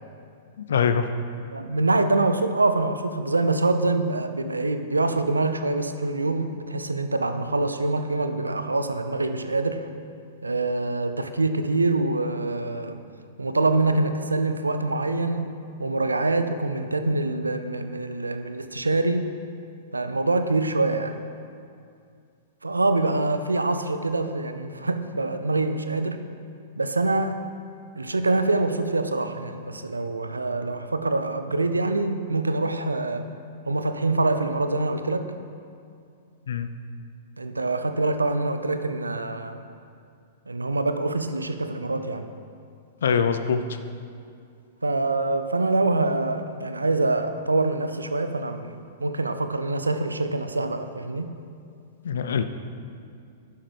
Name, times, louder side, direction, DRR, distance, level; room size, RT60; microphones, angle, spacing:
voice 1, 0.6-1.1 36.5-36.7 43.0-43.6 52.0-52.4, left 6 dB, 65° left, 10 dB, 0.6 m, -23 dB
voice 2, 1.5-9.9 10.4-13.0 13.4-19.3 19.9-21.2 22.6-26.2 26.8-27.4 28.0-33.3 33.7-35.3 37.4-39.6 40.5-42.3 44.8-51.3, right 2 dB, 80° right, 9 dB, 0.6 m, -25 dB
11.5 x 10.5 x 3.3 m, 2.4 s
figure-of-eight pair, 105°, 0 cm